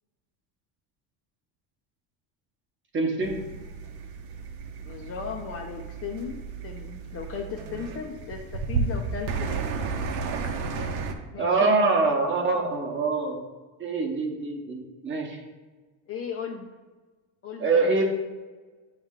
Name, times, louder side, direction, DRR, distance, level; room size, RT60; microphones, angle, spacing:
voice 1, 2.9-3.4 11.4-13.4 13.8-15.4 17.6-18.0, right 3 dB, 25° right, 1 dB, 0.8 m, -24 dB
sound 1, 3.2-11.1, right 4 dB, 75° right, 0.8 m, -33 dB
voice 2, 4.8-9.6 10.7-11.0 11.3-11.8 16.1-16.7 17.4-18.0, left 6 dB, 35° left, 1 dB, 0.4 m, -36 dB
9.1 x 3.2 x 3.6 m, 1.3 s
cardioid pair, 155°, 45 cm